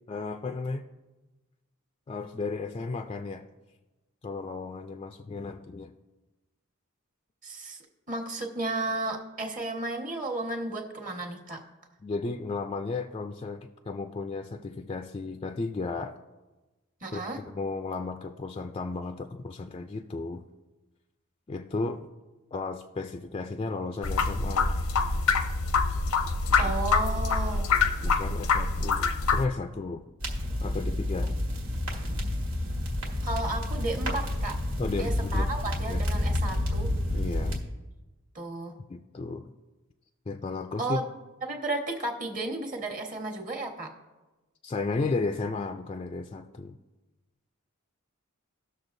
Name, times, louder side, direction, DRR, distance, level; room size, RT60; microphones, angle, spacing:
voice 1, 0.1-0.8 2.1-3.5 4.2-5.9 12.0-16.2 17.1-20.4 21.5-22.1 22.5-24.8 26.6-26.7 28.0-30.0 30.6-31.4 34.8-35.5 35.9-36.0 37.1-37.6 38.9-39.5 40.3-41.0 44.6-46.8, left 3 dB, 25° left, 6 dB, 0.3 m, -34 dB
voice 2, 7.4-7.8 8.1-11.6 17.0-17.4 26.6-27.8 33.2-34.6 35.0-36.9 38.3-38.8 40.8-41.0 41.4-43.9, right 2 dB, 40° right, 2 dB, 1.4 m, -33 dB
sound 1, 24.0-29.4, left 4 dB, 90° left, 0.7 m, -25 dB
sound 2, 30.2-37.6, left 1 dB, 90° right, 1.8 m, -29 dB
18.0 x 6.6 x 2.6 m, 1.1 s
head